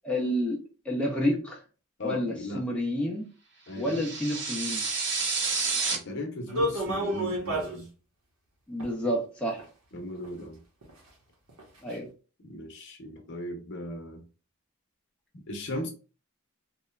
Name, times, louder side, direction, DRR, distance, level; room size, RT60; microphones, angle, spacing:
voice 1, 0.0-0.6 0.9-1.6 2.0-3.2 3.8-4.9 8.7-9.6 11.8-12.1, equal, 5° left, 0.3 m, -29 dB
voice 2, 2.0-2.7 3.7-4.1 5.9-7.9 9.9-10.6 12.4-14.2 15.5-15.9, left 1 dB, 55° left, 0.7 m, -37 dB
sound 1, 3.8-6.0, right 4 dB, 55° right, 0.7 m, -29 dB
sound 2, 6.5-7.8 8.8-8.9 9.6-9.7 10.2-10.3 10.8-10.9 11.5-11.6 11.9-12.0, equal, 80° right, 0.9 m, -29 dB
2.9 x 2.1 x 2.2 m
head